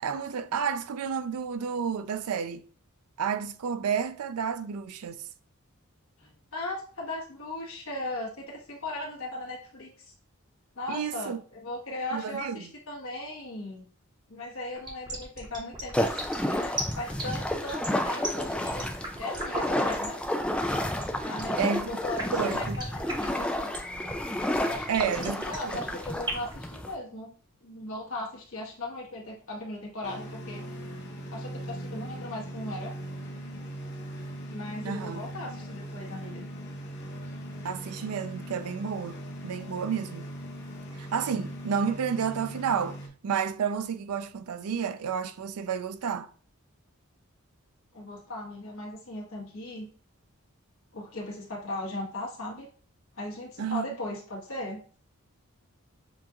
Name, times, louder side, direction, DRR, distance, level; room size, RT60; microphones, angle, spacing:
voice 1, 0.0-2.6 3.2-5.2 10.9-11.4 12.1-12.6 21.6-22.0 22.3-22.8 24.9-25.7 34.8-35.2 37.6-39.2 39.4-40.3 41.0-46.3 53.6-53.9, right 7 dB, 85° right, 0.4 m, -31 dB
voice 2, 6.2-10.1 10.7-13.9 14.3-18.9 19.2-20.2 21.2-23.7 24.6-27.3 27.6-30.6 31.3-32.9 34.5-36.5 47.9-49.9 50.9-52.7 53.2-54.8, left 1 dB, 70° left, 1.6 m, -38 dB
sound 1, 14.7-26.5, right 1 dB, 20° right, 1.0 m, -36 dB
sound 2, 15.9-26.9, left 1 dB, 5° left, 0.3 m, -31 dB
sound 3, 30.0-43.1, right 1 dB, 50° left, 1.0 m, -40 dB
7.0 x 2.4 x 2.9 m
head